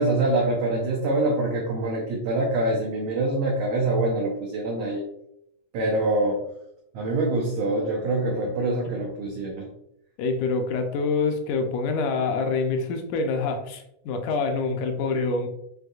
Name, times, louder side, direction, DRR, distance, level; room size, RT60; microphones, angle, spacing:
voice 1, 0.0-5.0 5.7-6.4 6.9-9.7, right 2 dB, 85° right, -1 dB, 1.4 m, -25 dB
voice 2, 10.2-15.5, left 4 dB, 80° left, 4 dB, 2.0 m, -26 dB
6.3 x 2.6 x 2.3 m, 0.78 s
omnidirectional pair, 3.6 m